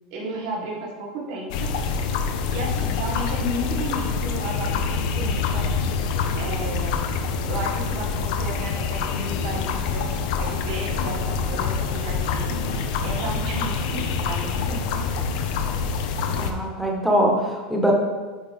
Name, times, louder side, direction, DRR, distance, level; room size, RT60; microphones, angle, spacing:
voice 1, 0.1-1.7 2.5-5.7 6.4-7.0 7.5-10.0 10.4-12.5 13.0-15.3, right 1 dB, 65° right, -2 dB, 1.8 m, -33 dB
sound 1, 1.5-16.5, left 5 dB, 70° left, 0.7 m, -26 dB
voice 2, 16.4-17.9, equal, ahead, -2 dB, 1.5 m, -22 dB
9.5 x 4.0 x 3.6 m, 1.3 s
supercardioid pair, 125°, 4 cm